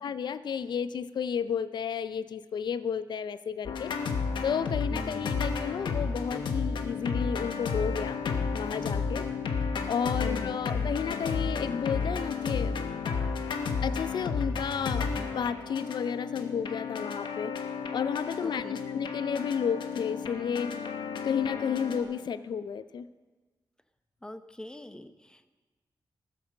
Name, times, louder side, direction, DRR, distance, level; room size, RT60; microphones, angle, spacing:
voice 1, 0.0-3.9 4.4-8.2 8.5-9.2 9.9-12.8 13.8-17.5 17.9-20.7 21.2-23.1, left 7 dB, 65° left, 14 dB, 0.4 m, -32 dB
sound 1, 3.7-22.0, left 5 dB, 85° left, 1.1 m, -32 dB
voice 2, 4.9-5.4 10.2-10.6 18.4-18.8 24.2-25.5, left 1 dB, 10° left, 10 dB, 0.8 m, -43 dB
15.0 x 7.7 x 6.4 m, 1.3 s
cardioid pair, 85°, 8 cm